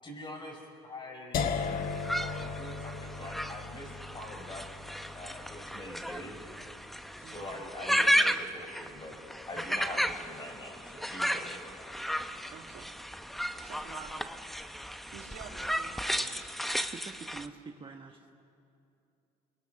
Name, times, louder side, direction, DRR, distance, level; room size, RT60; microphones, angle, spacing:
voice 1, 0.0-1.4 2.2-4.6 5.1-6.4 7.2-9.1 9.5-11.6, left 1 dB, 30° left, 1 dB, 6.6 m, -44 dB
sound 1, 1.3-7.3, left 5 dB, 60° left, 1.4 m, -37 dB
sound 2, 1.6-17.5, equal, ahead, 0.8 m, -34 dB
voice 2, 7.2-7.5 12.5-12.9 13.6-14.3 15.1-16.4, right 8 dB, 80° right, 3 dB, 2.2 m, -49 dB
voice 3, 16.9-18.3, right 4 dB, 30° right, 3 dB, 1.4 m, -46 dB
29.5 x 22.0 x 6.6 m, 2.6 s
cardioid pair, 110°, 17 cm